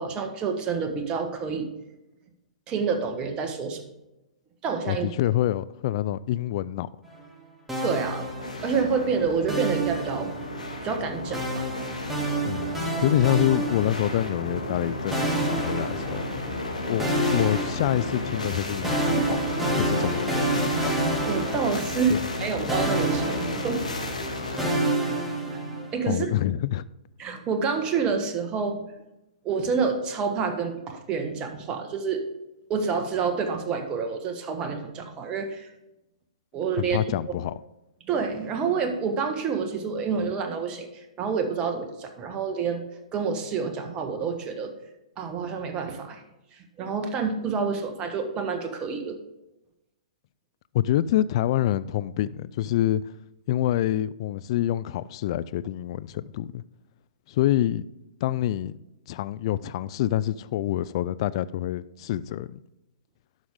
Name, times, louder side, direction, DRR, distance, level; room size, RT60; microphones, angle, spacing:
voice 1, 0.0-1.7 2.7-3.8 4.6-5.1 7.8-8.3 8.6-10.3 10.8-11.7 21.2-23.9 24.4-24.6 25.9-26.3 27.2-28.8 29.4-32.2 32.7-35.7 36.5-37.0 38.1-42.8 43.1-44.7 45.2-46.2 46.5-49.2, right 5 dB, 25° right, 1.3 m, -28 dB
voice 2, 4.9-6.9 12.4-16.3 16.9-19.4 19.8-20.4 22.1-22.2 26.1-26.8 36.8-37.5 50.7-53.0 53.5-56.6 57.3-57.8 58.2-58.8 59.1-62.6, left 13 dB, 50° left, 0.3 m, -26 dB
sound 1, 7.7-8.9 9.5-10.7 11.3-14.4 15.1-16.6 17.0-22.4 22.7-26.0, right 1 dB, 5° right, 2.2 m, -28 dB
sound 2, 7.9-24.6, left 2 dB, 90° left, 1.8 m, -33 dB
11.5 x 6.1 x 3.7 m
hypercardioid pair, 125°, 4 cm